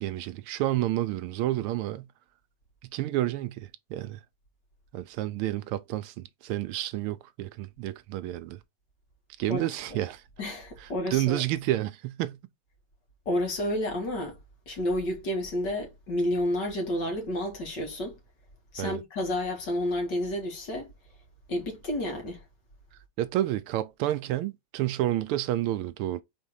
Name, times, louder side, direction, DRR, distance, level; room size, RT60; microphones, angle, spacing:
voice 1, 0.0-2.1 2.9-4.2 4.9-8.6 9.4-10.2 10.8-12.4 18.8-19.0 23.2-26.2, right 14 dB, 80° right, 1.5 m, -30 dB
voice 2, 9.5-10.0 10.4-11.4 13.3-14.4 14.7-18.2 18.7-20.9 21.5-22.4, left 1 dB, 55° left, 2.4 m, -30 dB
5.0 x 3.6 x 5.6 m
omnidirectional pair, 2.4 m